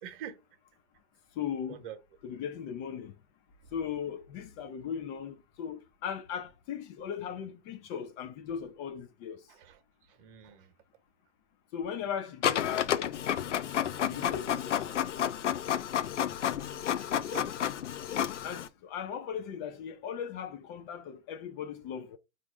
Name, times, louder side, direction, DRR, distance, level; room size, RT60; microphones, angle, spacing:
voice 1, 0.0-0.4 1.7-2.0 9.5-10.7 13.4-14.2 16.8-17.6, right 9 dB, 50° right, 1.1 m, -47 dB
voice 2, 1.4-1.8 2.2-3.1 3.7-9.4 11.7-13.2 14.0-15.0 18.4-22.2, left 8 dB, 30° left, 0.5 m, -38 dB
Printer, 12.4-18.7, left 10 dB, 90° left, 0.5 m, -31 dB
4.0 x 2.5 x 4.7 m
hypercardioid pair, 105°, 35 cm